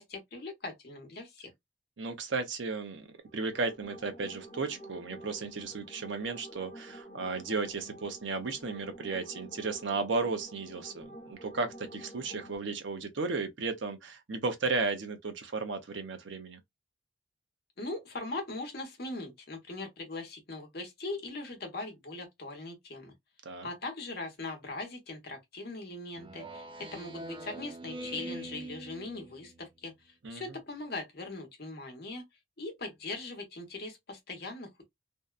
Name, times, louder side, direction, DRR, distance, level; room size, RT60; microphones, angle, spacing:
voice 1, 0.0-1.5 17.8-23.1 23.6-26.6 26.9-32.2 32.6-34.9, left 2 dB, 50° left, 0.9 m, -40 dB
voice 2, 2.0-3.1 3.3-16.6 23.4-23.7 30.2-30.4, right 4 dB, 65° right, 0.6 m, -34 dB
sound 1, 3.1-12.5, right 1 dB, 25° left, 0.7 m, -49 dB
Speech synthesizer, 26.2-29.7, right 2 dB, 25° right, 0.3 m, -43 dB
2.6 x 2.2 x 2.3 m
head